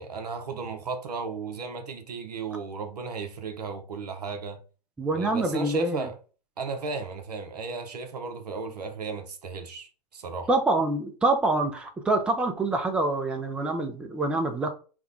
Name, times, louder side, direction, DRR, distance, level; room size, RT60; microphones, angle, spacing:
voice 1, 0.0-4.6 5.1-6.2 6.6-10.5, right 4 dB, 70° right, 0.8 m, -35 dB
voice 2, 5.0-6.1 10.5-14.7, right 2 dB, 5° right, 0.4 m, -26 dB
3.6 x 2.2 x 3.5 m
figure-of-eight pair, 110°, 21 cm